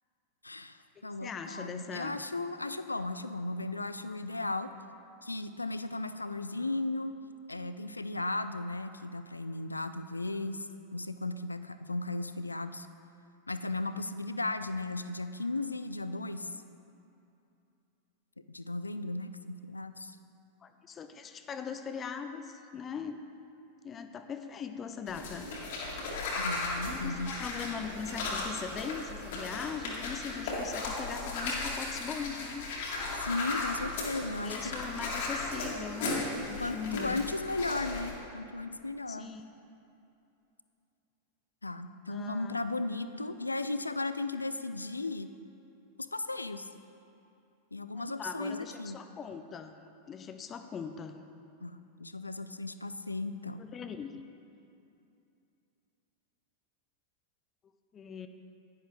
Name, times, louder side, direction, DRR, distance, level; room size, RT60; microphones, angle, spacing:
voice 1, 0.4-4.7 5.2-7.2 7.5-10.7 10.9-12.9 13.5-16.5 18.5-20.2 26.4-27.4 33.1-34.7 36.6-39.3 41.6-45.3 46.0-46.7 47.7-49.0 51.6-53.6, left 2 dB, 85° left, 11 dB, 0.3 m, -36 dB
voice 2, 1.0-2.2 20.6-23.2 23.8-25.5 26.9-32.7 34.2-37.3 39.1-39.4 42.1-42.6 47.9-49.8 50.1-51.2 53.6-54.1 57.9-58.3, left 6 dB, 25° left, 8 dB, 0.5 m, -40 dB
sound 1, 25.1-38.1, left 3 dB, 60° left, 2.1 m, -36 dB
10.5 x 10.0 x 3.1 m, 2.7 s
figure-of-eight pair, 90°, 0 cm